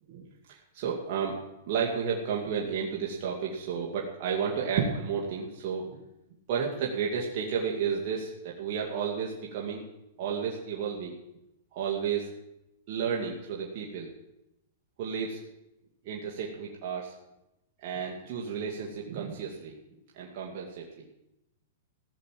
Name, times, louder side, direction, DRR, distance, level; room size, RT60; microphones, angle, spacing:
voice 1, 0.5-1.4 1.7-6.0 6.5-9.8 10.2-11.1 11.7-12.3 12.9-14.1 15.0-15.4 16.0-17.1 17.8-19.8 20.1-20.9, right 6 dB, 50° right, -3 dB, 2.3 m, -32 dB
16.0 x 6.8 x 7.6 m, 0.88 s
hypercardioid pair, 130°, 0 cm